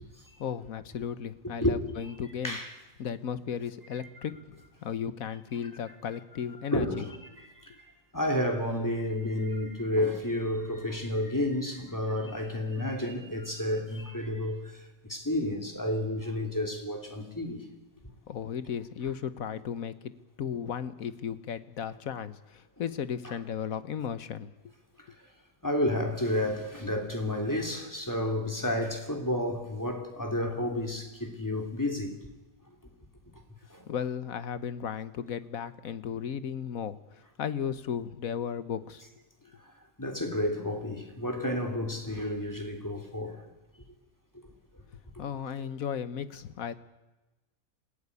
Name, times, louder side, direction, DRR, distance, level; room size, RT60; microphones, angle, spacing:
voice 1, 0.4-2.6 3.0-7.1 18.3-24.5 33.9-37.0 37.4-39.0 45.2-46.7, left 8 dB, 80° left, 1.5 m, -35 dB
voice 2, 1.6-2.1 2.4-2.8 4.2-4.3 5.9-6.0 6.7-17.7 23.2-23.3 25.0-25.1 25.6-32.1 33.7-33.8 40.0-43.4 45.6-45.7, left 1 dB, 15° left, 3.1 m, -31 dB
26.5 x 15.0 x 9.8 m
omnidirectional pair, 1.4 m